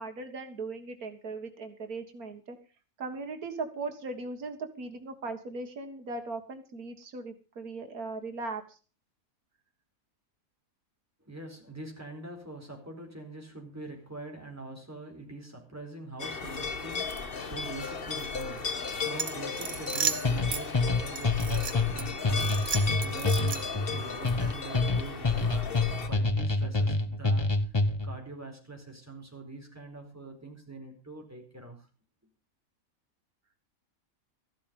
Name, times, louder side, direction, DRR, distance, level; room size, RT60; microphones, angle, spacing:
voice 1, 0.0-2.6 3.0-8.8, right 3 dB, 85° right, 7 dB, 2.1 m, -38 dB
voice 2, 11.2-27.7 28.0-31.9, right 2 dB, 10° right, 1 dB, 4.6 m, -44 dB
sound 1, 16.2-26.1, left 5 dB, 40° left, 1.5 m, -36 dB
sound 2, 19.2-20.6 21.2-22.0 22.4-23.8, right 6 dB, 60° right, 1.7 m, -33 dB
sound 3, 20.2-28.2, left 3 dB, 20° left, 0.9 m, -27 dB
14.5 x 12.0 x 5.3 m, 0.35 s
omnidirectional pair, 1.5 m